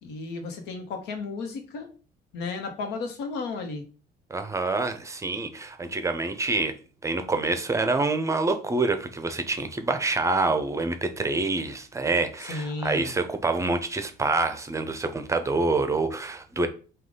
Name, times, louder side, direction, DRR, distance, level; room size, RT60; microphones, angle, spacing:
voice 1, 0.0-1.9 2.3-3.8 12.4-13.1, left 3 dB, 90° left, 1.0 m, -33 dB
voice 2, 4.3-6.7 7.0-16.7, right 3 dB, 15° right, 0.6 m, -26 dB
4.8 x 2.4 x 3.9 m
cardioid pair, 110°, 17 cm